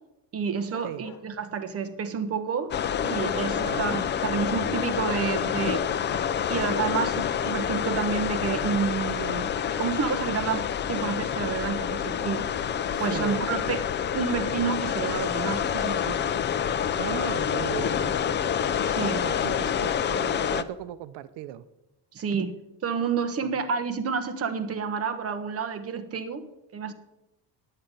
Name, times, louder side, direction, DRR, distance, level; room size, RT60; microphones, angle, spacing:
voice 1, 0.3-2.7 3.0-6.0 6.5-12.5 13.0-13.8 14.1-16.2 18.9-19.2 22.1-22.5 22.8-26.4 26.7-26.9, right 6 dB, 35° right, 9 dB, 1.1 m, -29 dB
sound 1, 0.6-1.2 3.3-3.9 4.7-4.9 6.2-6.4 6.7-6.9 7.2-7.3 8.4-8.6 9.2-10.2 10.6-10.8 11.1-11.3, left 8 dB, 60° left, 1.6 m, -41 dB
sound 2, 2.7-20.6, left 8 dB, 30° left, 0.4 m, -28 dB
voice 2, 3.6-4.0 12.9-13.8 17.0-18.2 18.8-21.6 23.4-23.5, right 12 dB, 90° right, 15 dB, 0.7 m, -37 dB
10.0 x 8.9 x 5.3 m, 0.91 s
cardioid pair, 135°, 41 cm